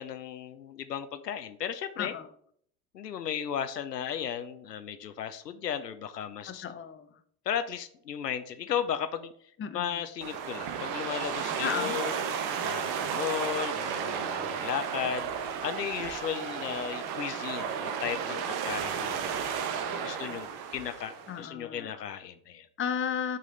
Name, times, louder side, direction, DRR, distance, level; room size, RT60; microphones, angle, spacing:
voice 1, 0.0-2.1 2.9-6.6 7.5-9.3 9.7-12.2 12.6-15.3 15.6-19.3 20.0-22.7, left 9 dB, 90° left, 11 dB, 0.7 m, -35 dB
voice 2, 2.0-2.3 6.5-7.1 9.6-10.0 11.6-12.0 21.3-21.9 22.8-23.4, left 8 dB, 25° left, 10 dB, 0.8 m, -34 dB
sound 1, 10.2-21.4, right 7 dB, 50° right, 1.2 m, -33 dB
7.6 x 5.6 x 3.9 m, 0.64 s
figure-of-eight pair, 70°, 48 cm